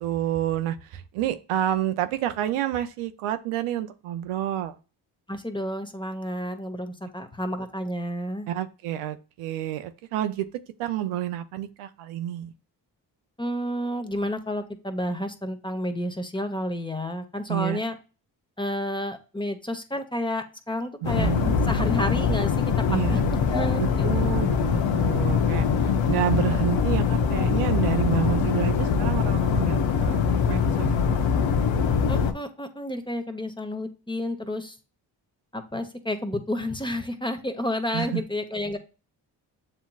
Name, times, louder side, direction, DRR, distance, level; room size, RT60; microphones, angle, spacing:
voice 1, 0.0-4.7 8.5-10.5 10.8-12.5 17.5-17.8 21.0-21.6 22.9-23.2 23.8-30.9 37.9-38.2, right 12 dB, 90° right, 10 dB, 0.6 m, -29 dB
voice 2, 5.3-8.5 13.4-18.0 18.6-21.3 21.7-22.5 23.1-23.2 23.5-24.2 32.1-34.8 35.5-38.8, left 1 dB, 10° left, 7 dB, 1.0 m, -30 dB
sound 1, 21.0-32.3, left 6 dB, 65° left, 0.8 m, -23 dB
7.4 x 2.9 x 2.3 m, 0.33 s
supercardioid pair, 50°, 49 cm